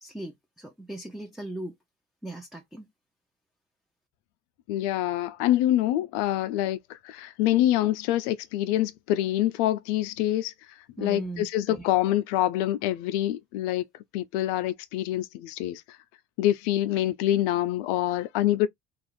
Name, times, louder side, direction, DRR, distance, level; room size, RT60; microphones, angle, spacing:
voice 1, 0.0-1.7 2.2-2.9 11.0-11.9, right 2 dB, ahead, 0.5 m, -38 dB
voice 2, 4.7-10.5 11.0-13.8 14.1-15.8 16.4-18.7, left 13 dB, 80° left, 0.5 m, -26 dB
2.4 x 2.4 x 3.1 m
hypercardioid pair, 65°, 34 cm